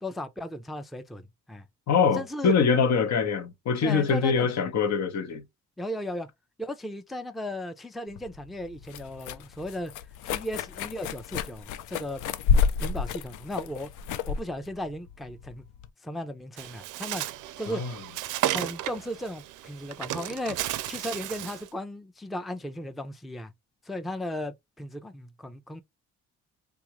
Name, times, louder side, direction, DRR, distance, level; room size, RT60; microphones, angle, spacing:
voice 1, 0.0-1.6 2.1-2.6 3.8-4.5 5.8-6.3 6.6-9.9 10.3-12.2 12.8-13.9 14.3-15.6 16.0-17.2 17.6-17.8 18.5-20.6 20.9-23.5 23.8-25.8, left 1 dB, ahead, 0.4 m, -36 dB
voice 2, 1.9-5.4 17.7-17.9, left 6 dB, 65° left, 0.9 m, -24 dB
sound 1, 8.1-15.9, left 6 dB, 85° left, 0.5 m, -30 dB
Bird, 16.6-21.7, right 14 dB, 85° right, 0.5 m, -33 dB
3.5 x 2.4 x 3.0 m
cardioid pair, 90°, 30 cm